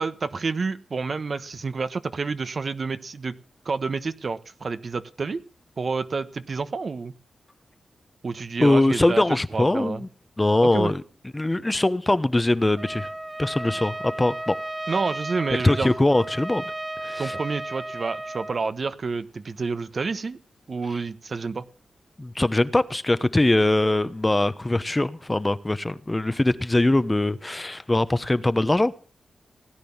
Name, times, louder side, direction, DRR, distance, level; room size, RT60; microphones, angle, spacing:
voice 1, 0.0-3.3 3.6-5.4 5.8-7.1 8.2-9.2 9.5-10.0 10.6-10.9 14.9-15.9 17.2-20.4 20.7-21.6, right 4 dB, 55° right, 1.2 m, -29 dB
voice 2, 8.6-10.1 10.4-11.0 11.3-13.1 13.4-14.6 15.6-16.6 17.0-17.3 22.2-28.9, left 2 dB, 20° left, 1.0 m, -22 dB
Trumpet, 12.8-18.6, right 1 dB, 15° right, 1.0 m, -34 dB
17.5 x 10.0 x 7.2 m
cardioid pair, 65°, 0 cm